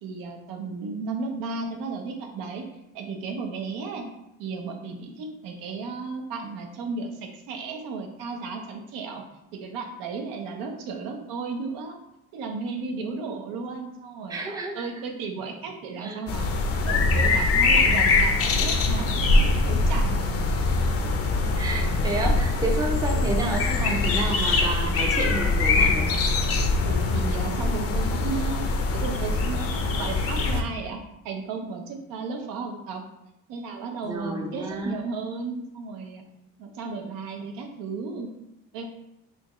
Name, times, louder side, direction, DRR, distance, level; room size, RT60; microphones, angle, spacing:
voice 1, 0.0-2.6 2.9-4.0 4.4-9.2 9.5-12.0 12.3-16.5 16.8-20.3 26.8-28.7 28.9-31.0 31.2-33.0 33.5-36.2 36.6-38.3 38.7-38.8, right 4 dB, 80° right, 3 dB, 0.7 m, -34 dB
voice 2, 14.3-14.8 16.0-16.2 21.6-26.2 34.0-35.0, right 2 dB, 10° right, 1 dB, 0.5 m, -30 dB
sound 1, 16.3-30.6, left 3 dB, 45° left, 0.5 m, -23 dB
4.3 x 2.4 x 3.0 m, 0.85 s
cardioid pair, 125°, 34 cm